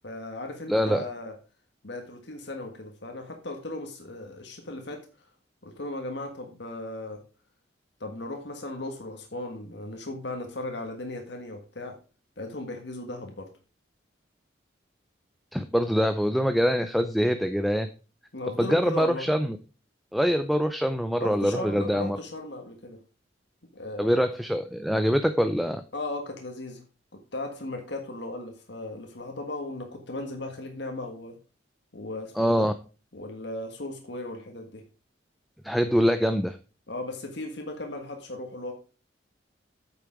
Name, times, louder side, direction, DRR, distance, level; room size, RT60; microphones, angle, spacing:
voice 1, 0.0-1.3 1.8-5.1 5.6-7.2 8.0-11.9 12.4-13.5 18.3-19.3 21.2-23.0 23.7-24.2 25.9-26.8 27.1-31.4 31.9-32.7 33.1-34.8 36.9-38.7, left 2 dB, 60° left, 4 dB, 1.6 m, -36 dB
voice 2, 0.7-1.1 15.5-17.9 18.6-19.6 20.1-22.2 24.0-25.8 32.4-32.7 35.6-36.6, equal, ahead, 9 dB, 0.5 m, -24 dB
8.8 x 6.8 x 4.7 m, 0.34 s
head